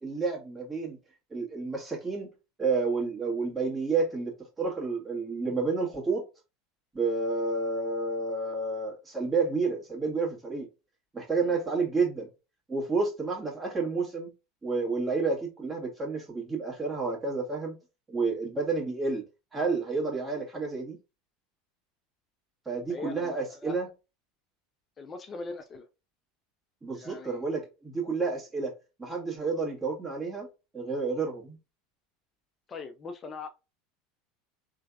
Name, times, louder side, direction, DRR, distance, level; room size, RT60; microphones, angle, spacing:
voice 1, 0.0-1.0 1.3-2.3 2.6-6.2 6.9-10.7 11.1-12.3 12.7-14.3 14.6-17.8 18.1-19.2 19.5-21.0 22.7-23.9 26.8-28.7 29.0-30.5 30.7-31.6, right 4 dB, 20° right, 1.8 m, -30 dB
voice 2, 22.9-23.8 25.0-25.9 26.9-27.4 32.7-33.5, left 4 dB, 30° left, 0.5 m, -41 dB
3.7 x 3.2 x 2.3 m
hypercardioid pair, 85°, 0 cm